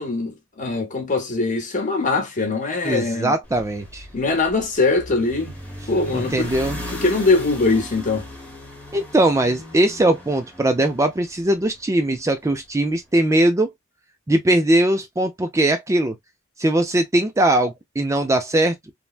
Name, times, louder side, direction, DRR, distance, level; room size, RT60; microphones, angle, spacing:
voice 1, 0.0-3.3 4.1-5.5 5.9-6.5 7.0-8.3, left 3 dB, 40° left, 0.9 m, -22 dB
voice 2, 2.8-4.1 6.1-6.8 8.9-13.7 14.3-16.2 16.6-18.8, right 1 dB, 15° right, 0.4 m, -20 dB
sound 1, 3.4-11.8, left 1 dB, 5° left, 1.0 m, -37 dB
3.2 x 2.1 x 2.4 m
head